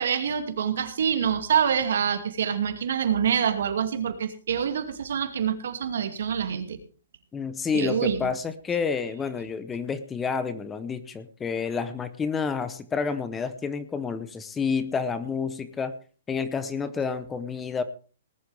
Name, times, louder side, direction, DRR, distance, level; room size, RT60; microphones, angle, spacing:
voice 1, 0.0-6.8 7.7-8.3, right 8 dB, 70° right, 7 dB, 2.5 m, -26 dB
voice 2, 7.3-15.9 16.3-17.8, left 5 dB, 10° left, 12 dB, 0.9 m, -29 dB
19.5 x 11.5 x 3.5 m, 0.38 s
hypercardioid pair, 155°, 0 cm